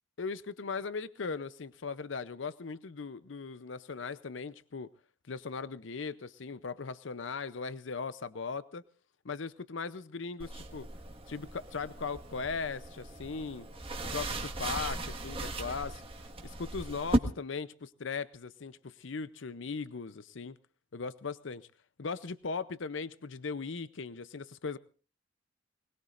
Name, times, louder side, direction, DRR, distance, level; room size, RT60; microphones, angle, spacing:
voice 1, 0.2-4.9 5.3-8.8 9.2-10.9 11.3-13.7 14.1-16.0 16.4-20.6 20.9-21.7 22.0-24.8, left 5 dB, 70° left, 0.7 m, -38 dB
sound 1, 10.4-17.2, right 2 dB, 30° right, 1.5 m, -37 dB
24.0 x 20.5 x 2.5 m
head